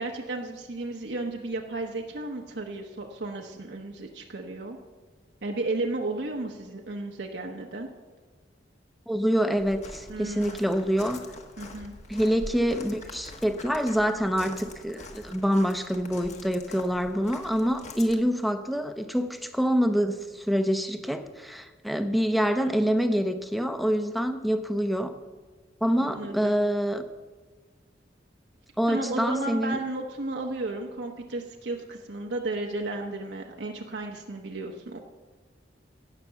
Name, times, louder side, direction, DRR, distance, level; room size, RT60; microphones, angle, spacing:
voice 1, 0.0-4.8 5.4-7.9 10.1-10.8 11.6-11.9 26.0-26.5 28.9-35.0, right 2 dB, 75° right, 1 dB, 1.1 m, -33 dB
voice 2, 9.1-11.2 12.1-25.2 25.8-27.0 28.8-29.8, equal, ahead, 8 dB, 0.7 m, -26 dB
Walk footsteps, 9.6-18.2, left 2 dB, 40° left, 1.3 m, -44 dB
17.0 x 6.0 x 6.9 m, 1.4 s
head